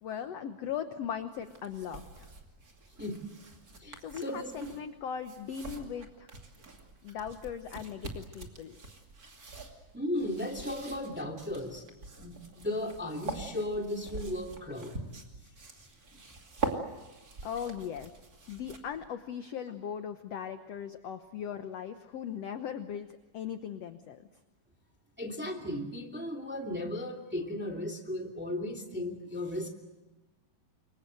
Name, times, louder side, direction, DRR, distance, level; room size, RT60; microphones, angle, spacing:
voice 1, 0.0-2.3 4.0-6.3 7.0-8.8 17.4-18.1 18.5-24.3, left 8 dB, 70° left, 8 dB, 1.6 m, -39 dB
sound 1, 1.3-19.1, right 3 dB, 30° right, 2.6 m, -44 dB
voice 2, 3.8-4.7 9.9-11.8 12.2-15.0 16.1-16.2 25.2-29.7, left 1 dB, 5° right, 1 dB, 2.2 m, -36 dB
28.0 x 23.5 x 7.9 m, 1.1 s
omnidirectional pair, 4.1 m